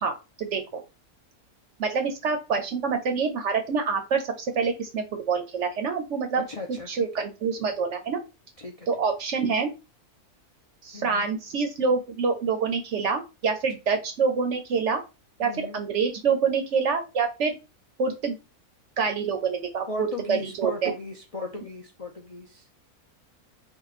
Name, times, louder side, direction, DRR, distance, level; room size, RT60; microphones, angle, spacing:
voice 1, 0.0-0.8 1.8-8.2 8.9-9.7 10.8-15.0 15.4-17.5 18.0-18.4 19.0-20.9, right 5 dB, 60° right, 6 dB, 0.8 m, -26 dB
voice 2, 6.5-7.1 8.6-8.9 10.9-11.4 15.4-15.8 19.9-22.7, left 2 dB, 45° left, 1 dB, 0.4 m, -37 dB
3.7 x 2.2 x 4.0 m, 0.27 s
omnidirectional pair, 1.6 m